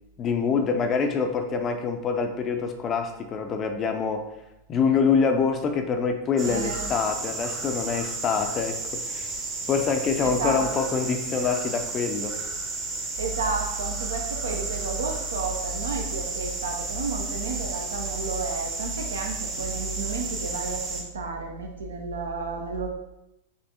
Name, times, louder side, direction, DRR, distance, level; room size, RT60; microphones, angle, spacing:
voice 1, 0.2-4.3 4.7-9.3 9.7-12.3, left 5 dB, 25° left, 5 dB, 0.5 m, -25 dB
sound 1, 6.4-21.0, right 3 dB, 30° right, 0.9 m, -33 dB
voice 2, 6.5-6.9 10.2-10.7 13.2-22.9, right 4 dB, 65° right, 3 dB, 0.6 m, -31 dB
5.4 x 3.3 x 2.8 m, 0.88 s
figure-of-eight pair, 90°, 0 cm